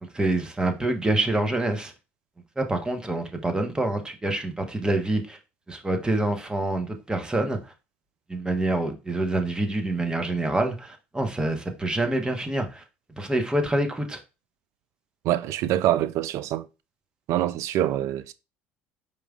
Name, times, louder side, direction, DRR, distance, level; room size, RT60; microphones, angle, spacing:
voice 1, 0.0-1.9 2.6-5.4 5.7-7.6 8.3-12.8 13.2-14.2, right 2 dB, 15° right, 1.1 m, -26 dB
voice 2, 15.2-16.7 17.3-18.3, right 13 dB, 60° right, 0.4 m, -25 dB
4.8 x 3.7 x 2.4 m
hypercardioid pair, 65°, 6 cm